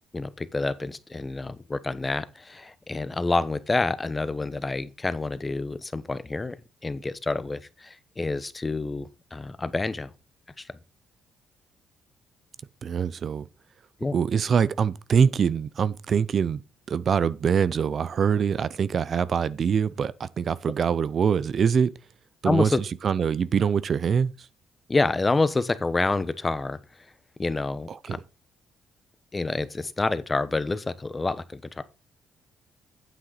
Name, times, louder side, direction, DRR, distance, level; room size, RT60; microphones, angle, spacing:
voice 1, 0.1-6.6 6.8-10.1 10.6-10.7 14.0-14.2 22.4-22.8 24.9-26.8 27.4-27.9 29.3-31.8, left 3 dB, 20° left, 0.9 m, -28 dB
voice 2, 12.8-13.5 14.1-16.6 16.9-21.9 22.4-24.5 27.9-28.2, right 7 dB, 50° right, 0.5 m, -24 dB
9.0 x 7.6 x 4.0 m
cardioid pair, 90°, 0 cm